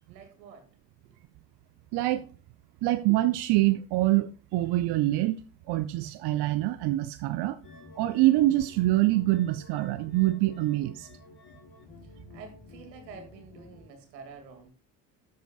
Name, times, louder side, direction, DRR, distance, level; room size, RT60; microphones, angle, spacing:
voice 1, 0.1-0.7 12.0-14.7, right 5 dB, 80° right, 2.4 m, -48 dB
voice 2, 1.9-2.3 2.8-5.4 5.7-7.6 8.0-11.1, right 16 dB, 55° right, 0.7 m, -25 dB
sound 1, 7.6-13.9, left 3 dB, 50° left, 5.1 m, -51 dB
12.5 x 7.9 x 2.4 m
hypercardioid pair, 55°, 50 cm